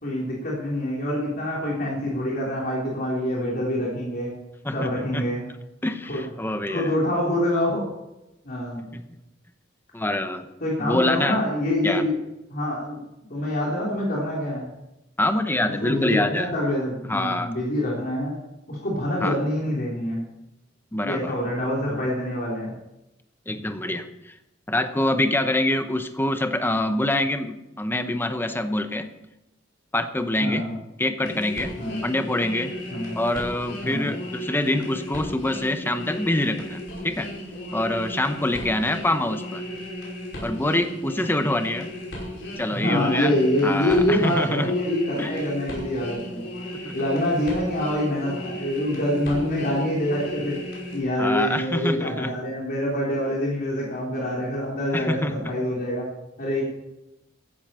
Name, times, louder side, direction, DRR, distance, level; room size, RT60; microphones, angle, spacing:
voice 1, 0.0-4.3 4.7-5.5 6.1-6.2 6.7-7.9 8.4-8.8 10.6-12.1 12.5-13.0 13.3-14.7 15.8-18.4 18.7-20.2 21.0-22.7 30.4-30.8 31.8-32.0 32.9-33.2 33.8-34.1 38.5-38.8 42.7-46.4 46.9-50.6 50.9-56.1 56.4-56.6, left 1 dB, 50° left, -4 dB, 3.3 m, -25 dB
voice 2, 4.6-5.2 5.8-6.9 8.9-9.0 9.9-10.4 10.8-11.4 11.8-12.0 15.2-16.5 17.1-17.5 19.2-19.4 20.9-21.3 23.5-24.0 24.7-29.1 29.9-30.7 31.0-31.7 32.0-32.7 33.1-36.8 37.0-37.3 37.7-39.6 40.4-41.9 42.6-43.3 43.6-44.7 45.2-45.3 46.8-46.9 51.2-52.3 54.9-55.5, left 1 dB, 10° left, 8 dB, 0.9 m, -25 dB
sound 1, 31.2-51.0, equal, 80° left, 5.6 m, -35 dB
15.0 x 10.5 x 4.3 m, 0.94 s
head